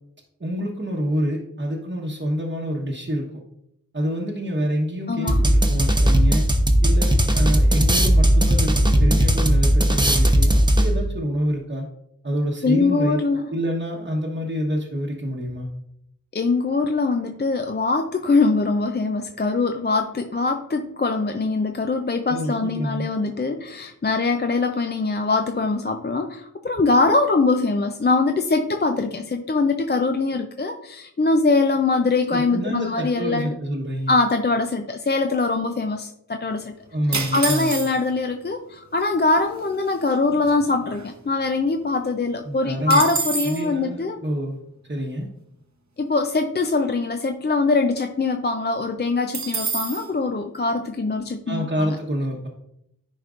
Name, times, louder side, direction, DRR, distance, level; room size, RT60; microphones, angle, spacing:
voice 1, 0.4-3.4 3.9-6.5 6.8-11.8 12.2-13.2 13.5-15.7 22.3-23.1 32.3-34.1 36.9-37.8 42.4-43.0 43.4-45.3 51.5-52.5, equal, 35° right, -3 dB, 1.1 m, -27 dB
voice 2, 5.1-5.4 12.6-13.5 16.3-33.5 34.1-36.7 37.3-44.2 46.0-52.0, left 3 dB, 30° left, 5 dB, 0.5 m, -22 dB
sound 1, 5.3-11.1, equal, 15° right, 0.8 m, -17 dB
sound 2, 37.1-38.2 39.0-39.1 39.3-39.6 40.1-41.5 41.9-42.0 42.3-43.7 49.3-50.1, right 4 dB, 55° right, 0.9 m, -28 dB
10.5 x 4.4 x 2.5 m, 0.78 s
wide cardioid pair, 45°, 34 cm